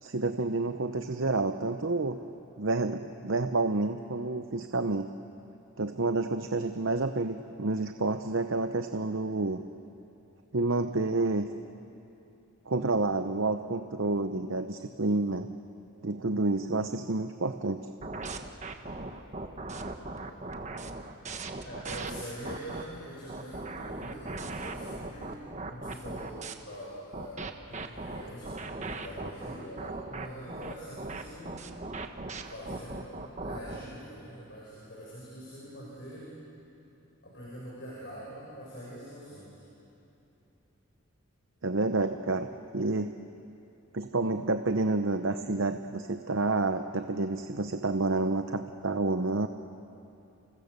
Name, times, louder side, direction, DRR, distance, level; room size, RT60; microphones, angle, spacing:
voice 1, 0.0-2.2 2.6-5.1 5.8-9.6 10.5-11.5 12.7-15.5 16.0-17.8 41.6-42.5 42.7-43.1 43.9-49.5, right 3 dB, 60° right, 8 dB, 0.8 m, -29 dB
sound 1, 18.0-22.8 23.3-26.5 27.1-33.8, right 2 dB, 30° right, 1.3 m, -38 dB
voice 2, 21.6-25.3 25.7-31.8 32.4-36.3 37.2-39.6, equal, 50° left, -5 dB, 6.5 m, -44 dB
29.5 x 28.5 x 6.7 m, 2.8 s
head